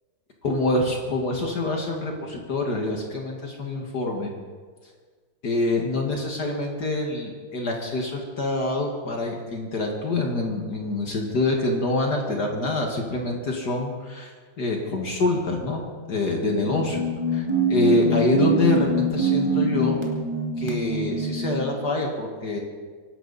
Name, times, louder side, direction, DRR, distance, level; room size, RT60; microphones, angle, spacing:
voice 1, 0.4-4.3 5.4-14.3 14.6-17.1 17.3-20.0 20.6-22.6, left 2 dB, 50° left, 1 dB, 2.2 m, -26 dB
sound 1, 16.6-21.8, right 2 dB, 15° right, 2.4 m, -24 dB
25.0 x 12.0 x 4.1 m, 1.5 s
omnidirectional pair, 2.3 m